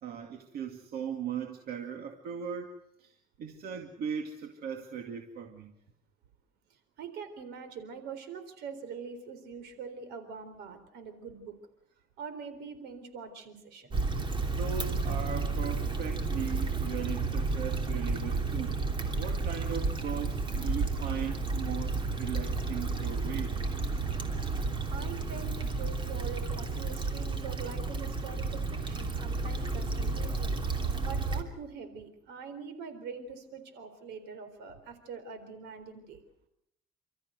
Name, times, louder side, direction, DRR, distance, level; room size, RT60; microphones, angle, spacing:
voice 1, 0.0-2.7 3.0-5.7 14.3-18.8 19.1-23.6, right 7 dB, 65° right, 4 dB, 2.3 m, -38 dB
voice 2, 7.0-11.6 12.2-14.0 24.6-24.7 24.9-30.6 31.0-36.2, right 5 dB, 80° right, 10 dB, 4.0 m, -43 dB
Stream / Traffic noise roadway noise / Trickle dribble, 13.9-31.4, right 3 dB, 30° right, 3.0 m, -32 dB
29.5 x 14.0 x 8.0 m, 0.78 s
cardioid pair, 110°, 17 cm